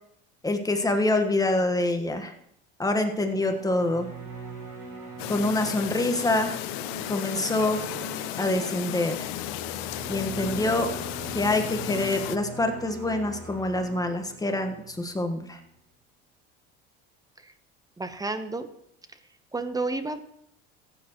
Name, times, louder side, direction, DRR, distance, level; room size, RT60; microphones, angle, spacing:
voice 1, 0.4-2.3 2.8-4.1 5.3-6.6 7.0-7.8 8.4-9.3 10.1-10.9 11.3-15.6, left 2 dB, 10° left, 5 dB, 1.4 m, -26 dB
sound 1, 3.1-15.6, right 3 dB, 90° right, 4.7 m, -41 dB
Chirp tweet, 5.2-12.4, left 15 dB, 75° left, 0.6 m, -34 dB
voice 2, 18.0-18.7 19.5-20.3, right 3 dB, 10° right, 10 dB, 0.9 m, -31 dB
15.0 x 8.8 x 3.1 m, 0.73 s
supercardioid pair, 95°, 31 cm